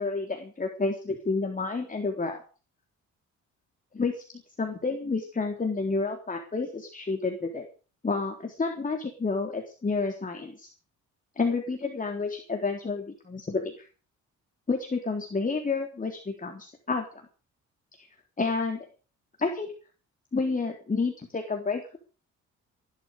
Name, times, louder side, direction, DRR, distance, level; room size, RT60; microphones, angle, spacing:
voice 1, 0.0-2.4 3.9-4.2 4.6-7.7 8.0-10.7 11.4-13.9 14.7-17.2 18.4-18.9 19.4-19.7 20.3-22.0, left 4 dB, 25° left, 3 dB, 3.8 m, -30 dB
17.0 x 12.5 x 6.7 m, 0.38 s
cardioid pair, 90°, 30 cm